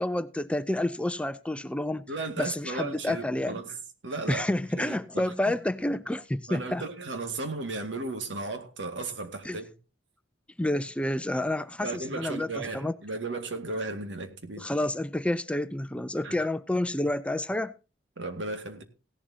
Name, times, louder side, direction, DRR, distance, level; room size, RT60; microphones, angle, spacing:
voice 1, 0.0-2.1 2.4-3.6 4.3-6.8 9.4-9.6 10.6-13.0 14.6-17.7, left 1 dB, 5° left, 0.5 m, -29 dB
voice 2, 2.1-3.7 4.0-4.5 4.8-5.3 6.5-9.7 11.8-14.6 16.2-16.4 18.2-18.8, right 3 dB, 70° right, 2.1 m, -35 dB
17.0 x 11.5 x 2.8 m
head